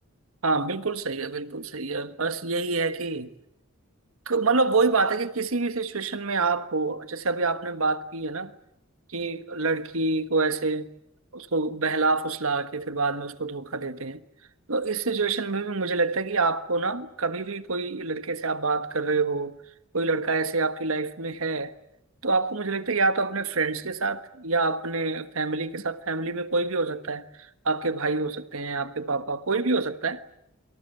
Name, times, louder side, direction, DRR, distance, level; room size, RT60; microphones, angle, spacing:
voice 1, 0.4-3.3 4.3-8.5 9.1-10.9 11.3-14.2 14.7-19.6 19.9-21.7 22.2-30.2, right 3 dB, 85° right, 1.5 m, -27 dB
28.5 x 24.5 x 8.0 m
head